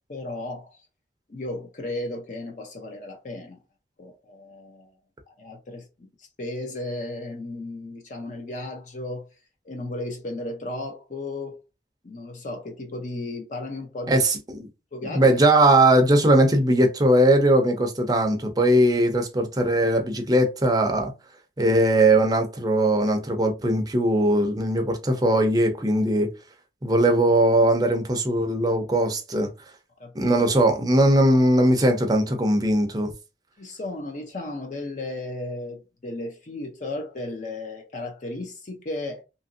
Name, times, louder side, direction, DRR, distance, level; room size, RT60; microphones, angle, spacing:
voice 1, 0.1-0.8 1.3-3.6 4.0-4.9 5.3-9.3 9.6-11.6 12.0-14.2 14.9-15.4 30.0-30.3 33.6-39.2, left 2 dB, 45° left, 0.6 m, -34 dB
voice 2, 14.1-14.7 15.2-21.1 21.6-26.3 26.8-29.5 30.1-33.1, right 1 dB, 20° right, 0.5 m, -20 dB
2.9 x 2.6 x 2.5 m
head